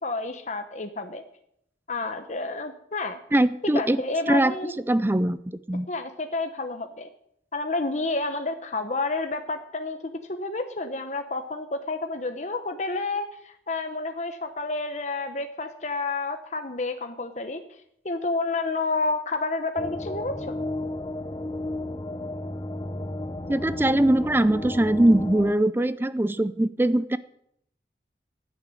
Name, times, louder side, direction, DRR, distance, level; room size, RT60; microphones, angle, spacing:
voice 1, 0.0-1.2 1.9-3.2 3.7-4.7 5.9-7.1 7.5-17.6 18.0-20.7, left 3 dB, 40° left, 6 dB, 1.0 m, -30 dB
voice 2, 3.3-4.0 4.3-4.5 4.9-5.9 23.5-27.2, right 1 dB, 10° right, 15 dB, 0.4 m, -22 dB
sound 1, 19.8-25.5, left 1 dB, 25° left, 0.7 m, -33 dB
11.0 x 10.0 x 9.0 m, 0.71 s
head